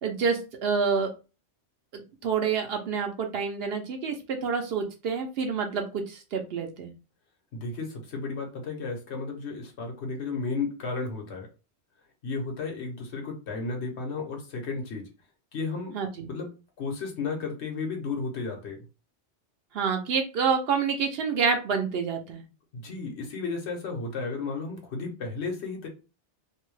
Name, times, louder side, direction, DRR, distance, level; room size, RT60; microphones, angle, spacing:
voice 1, 0.0-1.1 2.2-6.9 15.9-16.3 19.7-22.4, right 5 dB, 65° right, 5 dB, 0.7 m, -28 dB
voice 2, 7.5-11.5 12.2-15.1 15.5-16.0 16.3-18.8 22.7-25.9, left 4 dB, 70° left, 2 dB, 1.1 m, -33 dB
2.6 x 2.1 x 3.1 m, 0.31 s
omnidirectional pair, 1.2 m